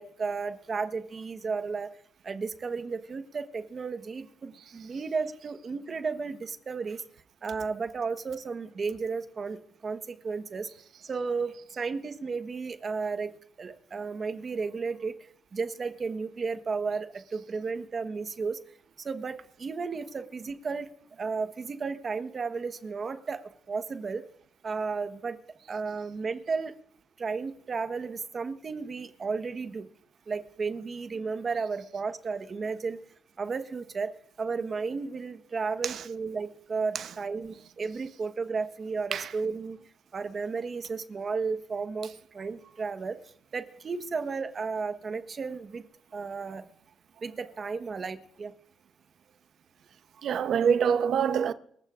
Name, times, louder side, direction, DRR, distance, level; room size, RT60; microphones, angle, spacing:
voice 1, 0.0-1.9 2.2-7.0 7.4-10.7 11.0-13.3 13.6-15.2 15.5-18.6 19.0-20.9 21.2-23.4 23.7-24.2 24.6-25.4 25.7-26.7 27.2-29.9 30.3-33.0 33.4-34.1 34.4-39.8 40.1-43.2 43.5-45.8 46.1-46.6 47.2-48.5, right 4 dB, 40° right, 1.2 m, -33 dB
voice 2, 50.2-51.5, right 7 dB, 65° right, 0.8 m, -25 dB
28.5 x 15.0 x 2.5 m
cardioid pair, 90°, 0 cm